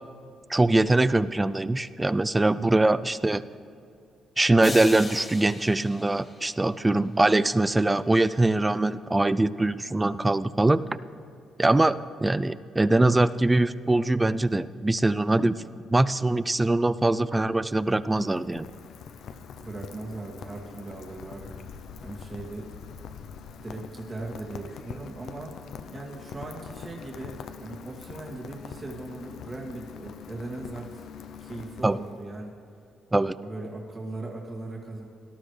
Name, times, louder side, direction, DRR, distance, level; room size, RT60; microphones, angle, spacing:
voice 1, 0.5-3.4 4.4-10.8 11.6-15.6 15.9-18.7 31.8-32.0 33.1-33.4, right 2 dB, 15° right, 16 dB, 0.4 m, -22 dB
sound 1, 4.6-6.9, left 3 dB, 30° left, 1.7 m, -38 dB
Rain, 17.7-32.4, left 7 dB, 70° left, 0.7 m, -44 dB
voice 2, 19.6-21.6 22.0-22.7 23.6-25.5 25.9-27.3 27.6-31.0 31.4-32.5 33.4-35.0, right 2 dB, 30° right, -2 dB, 2.3 m, -39 dB
18.0 x 13.0 x 3.3 m, 2.5 s
cardioid pair, 90°, 0 cm